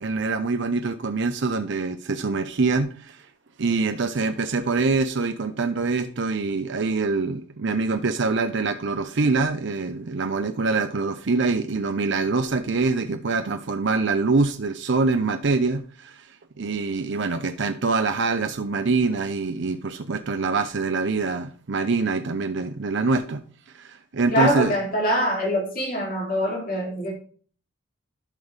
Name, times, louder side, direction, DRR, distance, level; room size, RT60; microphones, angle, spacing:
voice 1, 0.0-3.2 3.6-16.3 16.6-23.4 23.7-24.7, right 3 dB, 60° right, 8 dB, 0.6 m, -24 dB
voice 2, 24.3-27.1, equal, 45° left, -1 dB, 3.0 m, -24 dB
12.0 x 5.5 x 3.3 m, 0.42 s
head